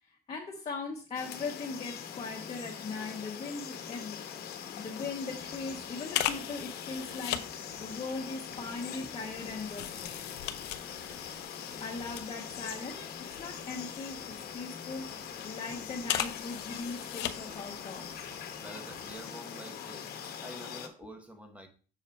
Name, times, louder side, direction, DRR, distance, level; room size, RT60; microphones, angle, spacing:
voice 1, 0.0-4.2 4.8-10.2 11.7-18.3, left 4 dB, 35° left, 1.3 m, -40 dB
sound 1, 1.1-20.9, left 8 dB, 65° left, 1.1 m, -42 dB
sound 2, 4.5-4.7 5.0-5.2 6.1-7.5 8.3-12.8 13.1-14.5 15.1-15.5 16.0-17.7 18.0-18.1, left 13 dB, 85° left, 0.6 m, -37 dB
sound 3, 5.1-19.2, right 2 dB, 70° right, 2.4 m, -57 dB
voice 2, 18.6-20.1 20.4-21.7, right 1 dB, 10° right, 1.3 m, -47 dB
6.8 x 4.8 x 4.3 m
cardioid pair, 110°, 17 cm